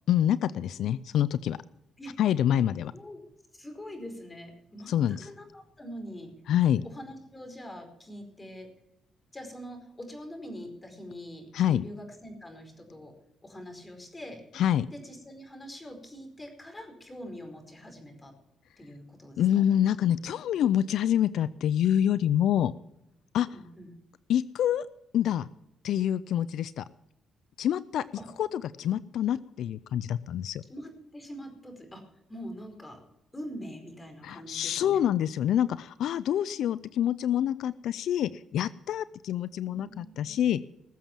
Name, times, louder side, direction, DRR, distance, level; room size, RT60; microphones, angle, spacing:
voice 1, 0.1-1.6 2.2-2.9 4.9-5.3 6.5-6.8 11.5-11.8 14.5-14.9 19.4-22.7 23.3-23.5 24.3-24.9 25.1-25.5 25.8-26.8 27.6-28.0 28.4-30.6 34.2-40.6, left 10 dB, 75° left, 17 dB, 0.4 m, -26 dB
voice 2, 3.5-6.3 6.8-8.7 9.3-13.1 13.4-14.4 14.9-18.3 18.8-19.4 23.5-23.9 28.2-28.3 30.7-32.0 32.3-33.0 33.3-35.0 39.5-40.4, equal, 20° left, 5 dB, 4.8 m, -44 dB
20.0 x 7.4 x 7.2 m, 0.86 s
cardioid pair, 90°, 0 cm